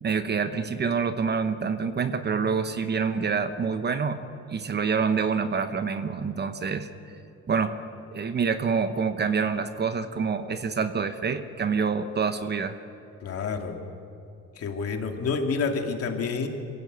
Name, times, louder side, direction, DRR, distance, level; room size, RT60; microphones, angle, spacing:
voice 1, 0.0-4.2 4.5-6.9 7.5-7.8 8.1-12.8, right 5 dB, 35° right, 10 dB, 1.0 m, -27 dB
voice 2, 13.2-13.8 14.6-16.5, left 5 dB, 50° left, 3 dB, 2.5 m, -28 dB
23.0 x 16.5 x 8.1 m, 2.6 s
cardioid pair, 110°, 30 cm